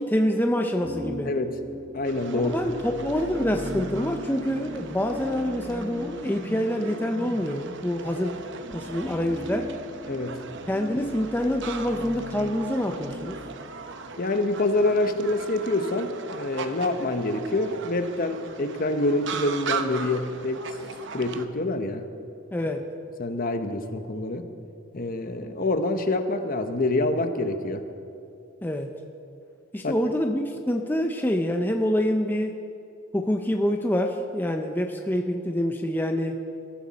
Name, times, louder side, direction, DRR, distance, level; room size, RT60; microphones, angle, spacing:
voice 1, 0.0-1.3 2.3-8.4 8.7-9.7 10.7-13.4 22.5-22.8 28.6-28.9 29.7-32.6 33.1-36.4, equal, 10° left, 4 dB, 0.7 m, -26 dB
sound 1, 0.8-13.6, equal, 25° right, 1.1 m, -40 dB
voice 2, 1.2-1.6 1.9-2.8 10.1-10.4 14.2-20.6 21.1-22.1 23.2-24.5 24.9-27.8 29.8-29.9, left 2 dB, 45° left, 7 dB, 1.0 m, -26 dB
sound 2, 2.0-21.5, right 5 dB, 60° right, 0.9 m, -39 dB
22.0 x 14.5 x 4.2 m, 2.6 s
head